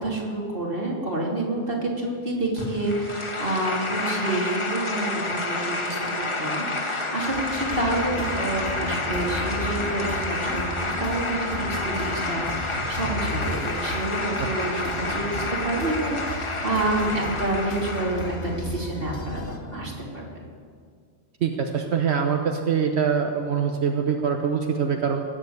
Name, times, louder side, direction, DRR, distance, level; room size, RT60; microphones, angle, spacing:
voice 1, 0.0-20.4, right 2 dB, 55° right, -3 dB, 3.1 m, -28 dB
sound 1, 2.6-18.6, left 2 dB, 30° left, 1.2 m, -30 dB
sound 2, 7.3-19.6, left 1 dB, 80° left, 1.9 m, -34 dB
voice 2, 21.4-25.2, right 7 dB, 75° right, 4 dB, 1.2 m, -24 dB
19.5 x 7.5 x 8.0 m, 2.1 s
omnidirectional pair, 1.1 m